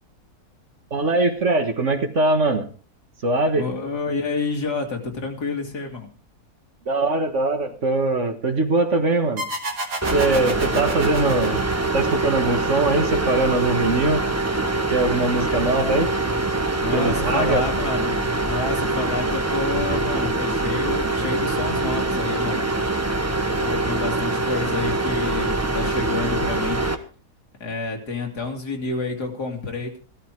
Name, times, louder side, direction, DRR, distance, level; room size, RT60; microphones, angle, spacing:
voice 1, 0.9-2.7 3.2-3.7 6.9-9.4 10.1-11.6 11.9-14.2 14.9-16.1 16.9-17.6, right 2 dB, 50° right, 6 dB, 1.9 m, -21 dB
voice 2, 3.6-6.1 10.6-10.8 16.8-22.7 23.5-26.9 27.6-30.0, left 3 dB, 80° left, 2 dB, 3.1 m, -29 dB
sound 1, 9.4-12.7, right 2 dB, 85° right, 2.8 m, -31 dB
sound 2, 10.0-27.0, right 2 dB, 15° right, 0.8 m, -24 dB
15.5 x 13.0 x 4.6 m, 0.40 s
omnidirectional pair, 1.7 m